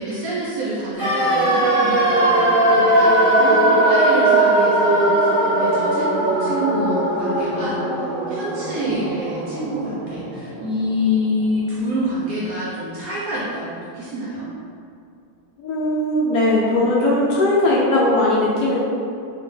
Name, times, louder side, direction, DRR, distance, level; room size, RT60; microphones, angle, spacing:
voice 1, 0.0-14.5, equal, 70° right, -7 dB, 0.9 m, -27 dB
sound 1, 1.0-10.9 11.2-11.3, right 1 dB, 10° left, 1.0 m, -19 dB
voice 2, 15.6-18.8, left 1 dB, 70° left, -6 dB, 1.0 m, -18 dB
2.7 x 2.5 x 3.8 m, 2.4 s
omnidirectional pair, 2.0 m